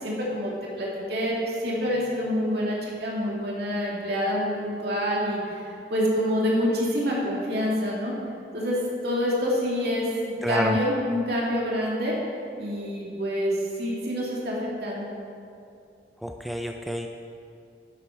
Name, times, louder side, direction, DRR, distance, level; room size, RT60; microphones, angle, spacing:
voice 1, 0.0-0.5 0.8-5.6 5.9-8.1 8.5-10.1 10.5-12.2 12.6-15.1, equal, 65° right, -4 dB, 2.3 m, -27 dB
voice 2, 10.4-10.8 16.2-17.1, equal, ahead, 3 dB, 0.4 m, -29 dB
11.5 x 8.1 x 4.6 m, 2.5 s
head